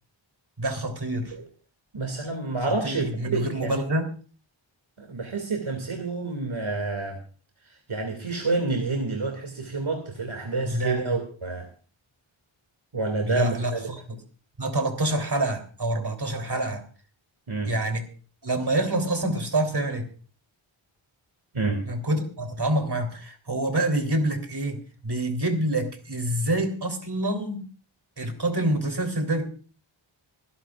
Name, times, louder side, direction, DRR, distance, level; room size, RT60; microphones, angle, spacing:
voice 1, 0.6-1.3 2.7-4.1 10.6-11.1 13.2-14.0 14.6-16.8 17.6-18.0 18.4-20.1 21.9-27.7 28.2-29.4, right 1 dB, 50° right, 5 dB, 3.5 m, -27 dB
voice 2, 1.9-3.7 5.0-7.2 7.9-11.7 12.9-13.9 17.5-17.7 21.5-21.8, right 3 dB, 70° right, 3 dB, 2.6 m, -28 dB
26.0 x 11.0 x 2.5 m, 0.39 s
wide cardioid pair, 55°, 50 cm